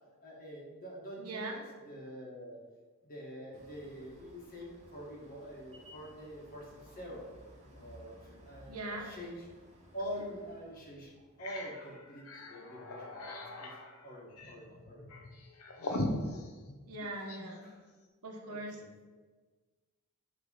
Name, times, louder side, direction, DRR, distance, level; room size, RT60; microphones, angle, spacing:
voice 1, 0.2-2.6 3.0-7.3 7.7-9.4 9.9-11.1 11.4-13.7 14.0-15.2 17.6-17.9 18.5-18.9, equal, 40° left, -2 dB, 1.4 m, -46 dB
voice 2, 1.2-1.6 8.7-9.1 16.9-17.7 18.2-18.8, right 2 dB, 85° right, 2 dB, 1.0 m, -40 dB
sound 1, 3.5-11.8, equal, 30° right, 1.0 m, -58 dB
sound 2, 10.1-10.3 10.7-10.8 11.2-17.5, left 1 dB, 75° left, 0.7 m, -40 dB
6.1 x 3.3 x 5.5 m, 1.3 s
head